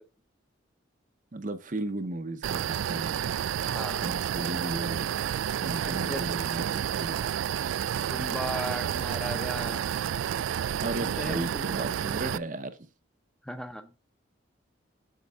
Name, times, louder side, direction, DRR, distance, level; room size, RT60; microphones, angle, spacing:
voice 1, 1.3-3.1 3.8-5.1 5.6-7.3 10.8-12.8, right 2 dB, 40° right, 0.7 m, -35 dB
sound 1, 2.4-12.4, right 9 dB, 80° right, 0.3 m, -30 dB
voice 2, 3.6-4.1 5.7-6.2 8.1-9.9 11.0-11.8 12.1-12.2 13.4-13.9, equal, 5° left, 0.7 m, -37 dB
8.4 x 6.5 x 3.5 m
head